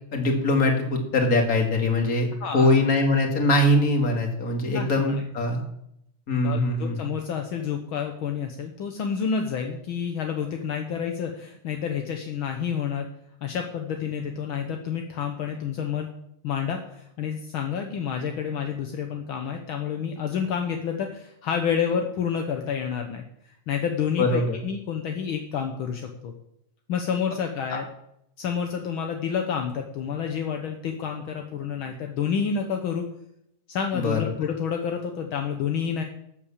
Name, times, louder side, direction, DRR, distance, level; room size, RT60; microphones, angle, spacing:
voice 1, 0.1-2.3 2.5-5.6 6.3-7.0 24.2-24.6 27.7-27.8 33.9-34.2, left 2 dB, 30° left, 2 dB, 2.3 m, -22 dB
voice 2, 2.4-2.7 4.6-5.2 6.4-13.1 13.4-16.1 16.4-23.3 23.7-26.3 26.9-27.9 28.4-33.1 33.7-36.0, left 7 dB, 60° left, 4 dB, 1.3 m, -29 dB
13.5 x 8.2 x 7.3 m, 0.77 s
omnidirectional pair, 3.5 m